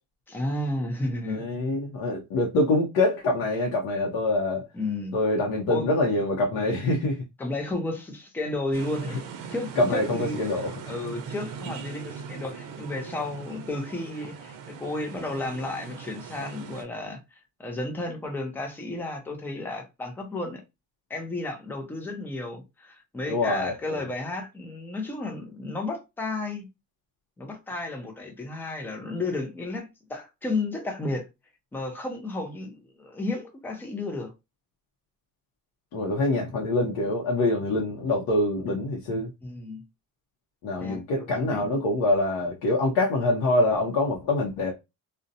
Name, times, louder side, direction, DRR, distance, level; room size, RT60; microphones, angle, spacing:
voice 1, 0.3-1.4 4.7-5.2 5.7-5.9 7.4-9.2 9.5-10.4 10.9-17.2 17.6-20.6 21.1-26.7 27.4-31.3 31.7-34.3 39.4-39.8 40.8-41.7, left 2 dB, 5° left, 0.4 m, -32 dB
voice 2, 1.3-4.7 5.1-7.2 9.8-10.9 23.3-24.1 35.9-39.3 40.6-44.7, left 2 dB, 85° left, 0.7 m, -25 dB
sound 1, 8.7-16.8, right 7 dB, 70° right, 0.6 m, -40 dB
2.6 x 2.1 x 2.5 m
cardioid pair, 160°, 34 cm